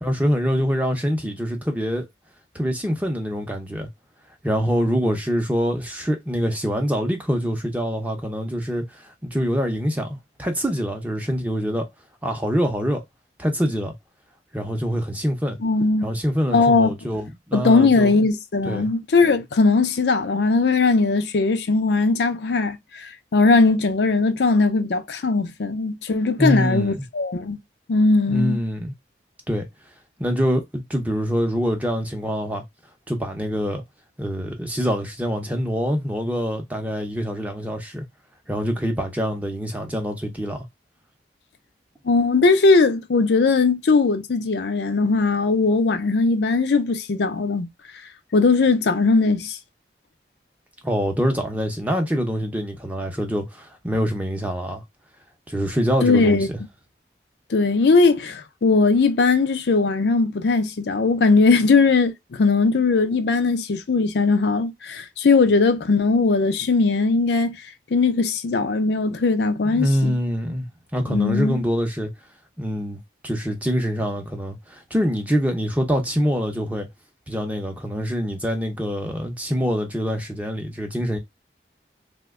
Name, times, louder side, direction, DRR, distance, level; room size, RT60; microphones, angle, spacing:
voice 1, 0.0-2.1 2.5-3.9 4.4-11.9 12.2-13.0 13.4-13.9 14.5-15.6 16.0-18.1 18.7-18.9 26.4-27.0 28.3-28.9 29.5-29.7 30.2-32.6 33.1-33.8 34.2-38.1 38.5-40.7 50.8-54.8 55.5-56.6 69.7-70.7 70.9-72.1 72.6-73.0 73.2-76.9 77.3-81.2, equal, 10° right, 0.6 m, -25 dB
voice 2, 15.6-16.1 16.5-16.9 17.5-27.6 27.9-28.6 42.0-47.7 48.3-49.6 56.0-56.5 57.5-67.6 67.9-70.1 71.1-71.5, left 3 dB, 75° left, 0.5 m, -19 dB
2.9 x 2.2 x 3.5 m
head